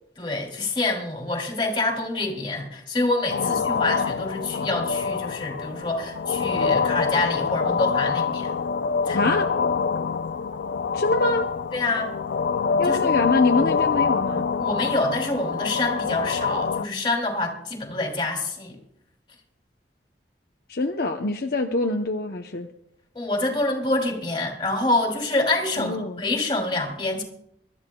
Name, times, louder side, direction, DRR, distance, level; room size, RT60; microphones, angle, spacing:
voice 1, 0.2-8.6 9.0-9.3 11.7-12.1 12.8-13.2 14.6-18.8 23.1-27.2, left 2 dB, 30° left, 1 dB, 2.9 m, -26 dB
sound 1, 3.3-16.9, left 5 dB, 85° left, 0.4 m, -25 dB
voice 2, 9.1-9.5 10.9-11.5 12.8-14.5 20.7-22.7 25.8-26.2, left 2 dB, 60° left, 2 dB, 0.8 m, -24 dB
23.5 x 13.5 x 2.3 m, 0.75 s
head